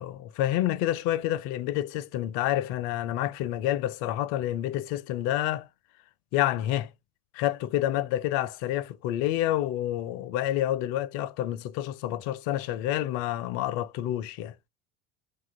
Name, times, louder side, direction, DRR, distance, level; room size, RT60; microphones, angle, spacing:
voice 1, 0.0-5.7 6.3-6.9 7.3-14.5, left 13 dB, 45° left, 0.5 m, -28 dB
2.6 x 2.3 x 3.7 m
figure-of-eight pair, 70°, 45 cm